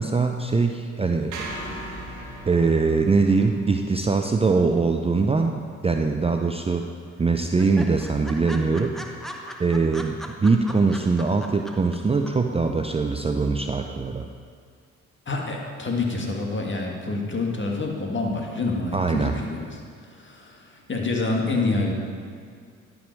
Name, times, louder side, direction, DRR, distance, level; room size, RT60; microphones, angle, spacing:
voice 1, 0.0-1.3 2.5-6.9 7.2-9.0 9.6-14.3 18.9-19.3, right 4 dB, 20° right, 4 dB, 0.5 m, -22 dB
sound 1, 1.3-5.6, right 1 dB, 65° right, 1.5 m, -39 dB
sound 2, 6.1-6.5 6.8-6.9 7.2-7.3 7.6-12.0 12.3-12.4, equal, ahead, 1.0 m, -38 dB
voice 2, 15.3-19.8 20.1-21.9, left 3 dB, 35° left, 0 dB, 1.8 m, -27 dB
11.0 x 5.3 x 4.6 m, 2.2 s
supercardioid pair, 55°, 33 cm